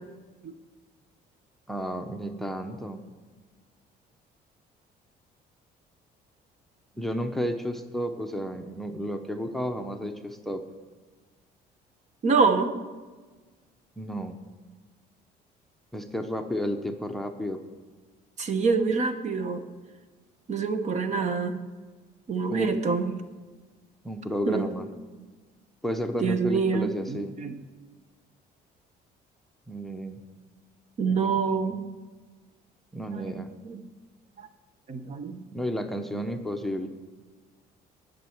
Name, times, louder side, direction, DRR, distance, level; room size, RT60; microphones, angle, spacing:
voice 1, 1.7-3.0 6.9-10.6 14.0-14.4 15.9-17.6 22.5-22.8 24.0-24.9 25.8-27.3 29.7-30.2 31.0-31.4 32.9-33.5 35.5-36.9, equal, ahead, 7 dB, 0.8 m, -32 dB
voice 2, 12.2-12.7 18.4-19.6 20.5-21.6 22.3-23.1 24.5-24.7 26.2-27.6 31.0-31.9 33.2-33.8 34.9-35.4, right 5 dB, 45° right, 9 dB, 1.0 m, -26 dB
18.5 x 6.4 x 4.5 m, 1.3 s
cardioid pair, 110°, 17 cm